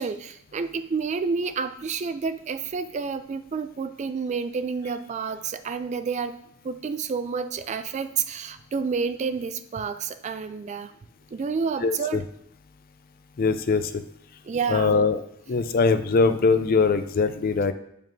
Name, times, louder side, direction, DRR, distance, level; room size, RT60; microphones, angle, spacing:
voice 1, 0.0-6.4 6.6-10.9 11.3-12.2 14.5-15.1, right 5 dB, 35° right, 11 dB, 0.3 m, -29 dB
voice 2, 11.8-12.2 13.4-14.0 14.7-15.2 15.5-17.7, left 4 dB, 45° left, 10 dB, 0.4 m, -22 dB
9.1 x 5.1 x 2.6 m, 0.79 s
head